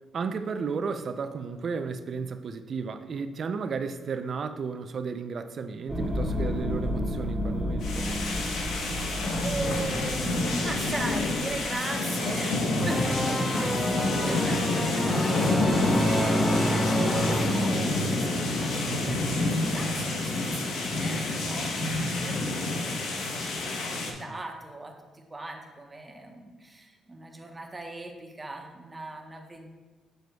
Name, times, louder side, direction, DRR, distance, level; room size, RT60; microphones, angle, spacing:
voice 1, 0.1-8.1, right 5 dB, 50° right, 9 dB, 0.4 m, -33 dB
sound 1, 5.9-11.7, left 1 dB, 5° right, 2.2 m, -32 dB
sound 2, 7.8-24.1, left 2 dB, 80° left, 1.0 m, -28 dB
voice 2, 9.4-29.7, right 2 dB, 20° right, 2 dB, 1.0 m, -39 dB
sound 3, 12.8-18.4, left 1 dB, 15° left, 0.8 m, -27 dB
7.7 x 7.4 x 2.3 m, 1.2 s
cardioid pair, 90°, 0 cm